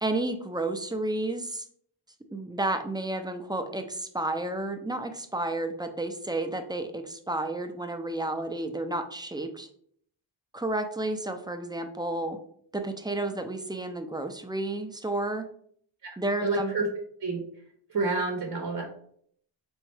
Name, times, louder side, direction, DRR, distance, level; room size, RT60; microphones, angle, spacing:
voice 1, 0.0-1.7 2.3-9.7 10.5-12.4 12.7-15.4 16.2-16.7, right 2 dB, 10° right, 6 dB, 0.5 m, -31 dB
voice 2, 16.4-16.9 17.2-17.4 17.9-18.8, right 3 dB, 45° right, 2 dB, 0.8 m, -28 dB
4.2 x 3.5 x 3.2 m, 0.64 s
cardioid pair, 50°, 48 cm